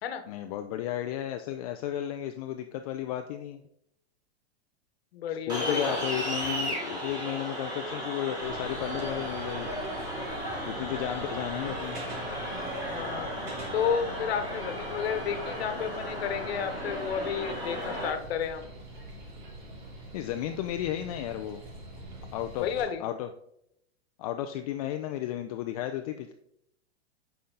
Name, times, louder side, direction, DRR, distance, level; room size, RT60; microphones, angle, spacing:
voice 1, 0.3-3.6 5.3-9.7 10.7-12.0 20.1-21.6 22.3-22.6 23.0-23.3 24.2-26.3, left 12 dB, 35° left, 7 dB, 0.4 m, -33 dB
voice 2, 5.1-6.0 12.9-13.3 13.7-18.7 22.6-23.0, left 7 dB, 65° left, 9 dB, 1.2 m, -31 dB
sound 1, 5.5-18.1, equal, 10° right, 2.3 m, -35 dB
sound 2, 8.4-22.8, right 1 dB, 45° right, 2.9 m, -44 dB
8.6 x 5.6 x 3.9 m, 0.75 s
supercardioid pair, 150°, 33 cm